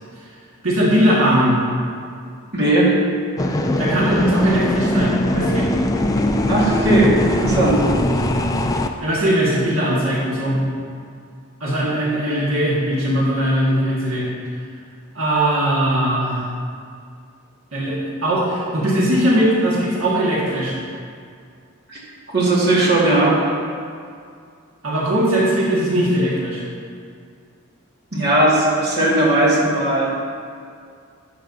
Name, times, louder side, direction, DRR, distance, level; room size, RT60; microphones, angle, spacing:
voice 1, 0.6-1.6 3.8-5.7 9.0-10.6 11.6-14.3 15.1-16.5 17.7-20.8 24.8-26.6, right 1 dB, 70° right, -7 dB, 1.7 m, -19 dB
voice 2, 2.5-3.0 6.4-7.8 21.9-22.0 22.3-23.5 28.1-30.1, right 1 dB, 50° right, -6 dB, 1.9 m, -17 dB
sound 1, 3.4-8.9, left 1 dB, 15° left, 0.3 m, -20 dB
11.5 x 7.7 x 2.7 m, 2.3 s
head